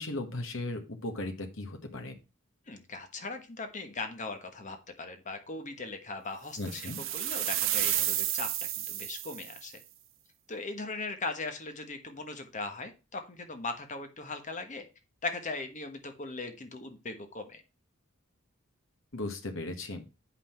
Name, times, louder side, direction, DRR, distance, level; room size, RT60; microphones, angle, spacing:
voice 1, 0.0-2.1 6.6-7.0 19.1-20.0, left 2 dB, 65° left, 4 dB, 1.5 m, -36 dB
voice 2, 2.7-8.5 8.9-9.7 10.5-14.9 15.2-17.6, left 3 dB, 35° left, 7 dB, 1.3 m, -39 dB
sound 1, 6.6-9.6, right 12 dB, 65° right, 1.1 m, -31 dB
8.5 x 5.8 x 4.4 m, 0.29 s
head